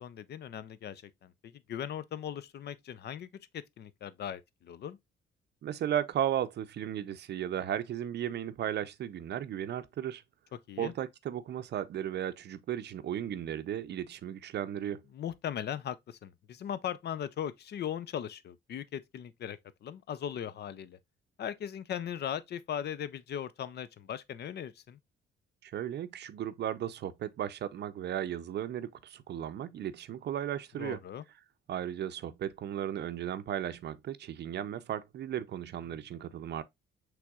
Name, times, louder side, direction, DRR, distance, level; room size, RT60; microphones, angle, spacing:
voice 1, 0.0-5.0 10.7-10.9 15.1-21.0 21.4-25.0 30.8-31.2 35.9-36.0, left 9 dB, 55° left, 0.5 m, -39 dB
voice 2, 5.6-10.2 10.8-15.0 25.6-31.0 31.7-36.6, right 10 dB, 60° right, 0.5 m, -35 dB
5.9 x 3.4 x 2.3 m
cardioid pair, 90°, 20 cm